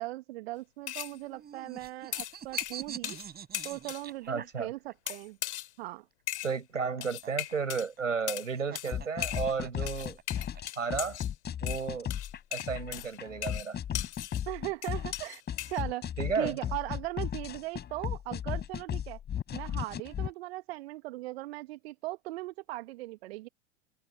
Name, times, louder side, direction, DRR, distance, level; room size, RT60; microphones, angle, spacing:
voice 1, 0.0-3.2 3.6-5.4 5.8-6.0 14.5-16.0 16.4-19.2 19.5-23.5, right 18 dB, 55° right, 2.0 m, -39 dB
sound 1, 0.9-1.2 2.1-3.3 3.5-4.1 5.1-5.7 6.3-6.6 7.0-7.9 8.3-8.5 8.8-8.9 9.2-9.5 9.9-11.3 11.7-14.5 14.8-15.8, left 14 dB, 60° left, 2.9 m, -38 dB
sound 2, 1.1-5.1 6.4-10.6, right 9 dB, 25° right, 5.9 m, -45 dB
voice 2, 4.3-4.7 6.4-10.2 10.8-11.2 11.6-12.1 12.5-13.8 16.2-16.6, right 5 dB, 80° right, 7.8 m, -33 dB
sound 3, 8.9-20.3, left 9 dB, 25° left, 5.2 m, -35 dB
figure-of-eight pair, 85°, 38 cm